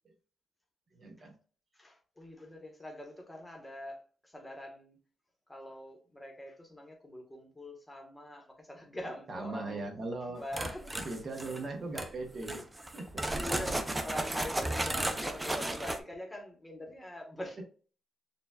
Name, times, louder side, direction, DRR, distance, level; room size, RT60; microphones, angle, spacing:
voice 1, 0.9-1.3 9.3-10.7 11.0-12.6 12.9-13.0, right 3 dB, 40° right, 0.8 m, -39 dB
voice 2, 1.7-5.0 5.5-9.9 10.2-11.1 13.3-17.6, left 1 dB, 10° left, 1.0 m, -44 dB
sound 1, 10.5-11.6 11.9-12.1 12.4-16.0, right 1 dB, 10° right, 0.4 m, -34 dB
6.6 x 2.3 x 2.2 m
cardioid pair, 145°, 0 cm